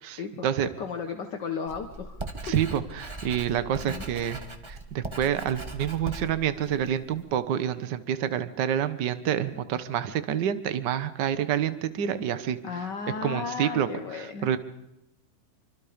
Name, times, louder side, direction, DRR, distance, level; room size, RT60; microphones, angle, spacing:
voice 1, 0.1-0.5 0.8-2.2 2.5-2.6 3.8-4.1 12.6-14.5, left 5 dB, 55° left, 5 dB, 1.2 m, -34 dB
Writing, 1.7-7.3, right 2 dB, 40° right, 0.4 m, -40 dB
voice 2, 2.4-4.4 4.7-12.6 13.2-13.9 14.1-14.6, right 9 dB, 70° right, 13 dB, 1.0 m, -28 dB
26.5 x 25.0 x 5.2 m, 0.87 s
omnidirectional pair, 3.6 m